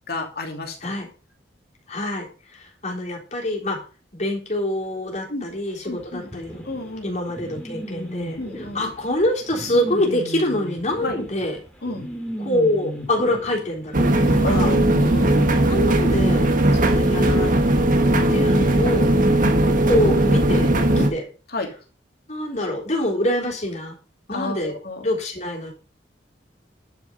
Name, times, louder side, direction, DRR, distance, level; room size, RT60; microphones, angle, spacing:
voice 1, 0.1-0.8 5.3-5.5 5.8-6.3 6.6-7.2 8.4-8.9 11.0-11.2 11.8-12.1 14.4-15.6 16.7-17.0 18.1-18.4 19.4-19.7 20.9-21.2 21.5-21.7 24.3-24.6 24.8-25.1, left 2 dB, 60° left, 3 dB, 2.7 m, -31 dB
voice 2, 1.9-3.8 4.1-6.6 7.0-11.6 12.4-14.7 15.7-16.5 16.8-17.9 18.3-19.1 19.8-20.7 21.0-21.2 22.3-24.0 24.3-24.8 25.0-25.7, left 1 dB, 40° left, -2 dB, 3.7 m, -25 dB
sound 1, 6.3-15.4, equal, 5° left, 2.6 m, -34 dB
sound 2, 13.9-21.1, right 1 dB, 50° right, 1.4 m, -18 dB
11.0 x 7.0 x 5.2 m, 0.36 s
head